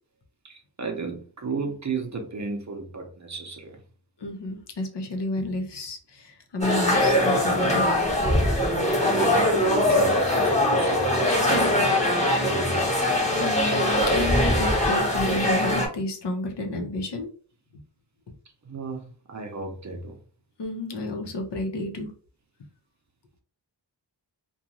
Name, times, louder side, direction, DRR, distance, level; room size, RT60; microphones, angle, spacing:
voice 1, 0.4-3.8 8.6-8.7 9.0-12.0 12.4-12.9 18.6-20.2, right 4 dB, 40° right, 0.6 m, -34 dB
voice 2, 4.2-7.8 13.3-17.3 20.6-22.1, left 2 dB, 70° left, 0.7 m, -31 dB
sound 1, 6.6-15.9, left 1 dB, 15° left, 0.9 m, -22 dB
2.5 x 2.3 x 2.9 m
wide cardioid pair, 90°, 44 cm